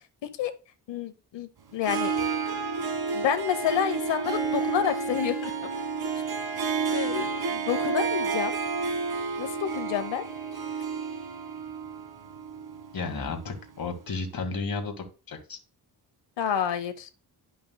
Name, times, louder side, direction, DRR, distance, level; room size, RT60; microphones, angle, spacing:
voice 1, 0.9-2.1 3.1-5.5 6.8-8.6 9.4-10.2 16.4-17.1, left 9 dB, 85° left, 9 dB, 1.1 m, -29 dB
Harp, 1.8-13.6, right 5 dB, 60° right, 1.7 m, -30 dB
voice 2, 12.9-15.6, left 4 dB, 55° left, 4 dB, 2.1 m, -33 dB
11.0 x 5.4 x 2.3 m, 0.32 s
cardioid pair, 90°, 42 cm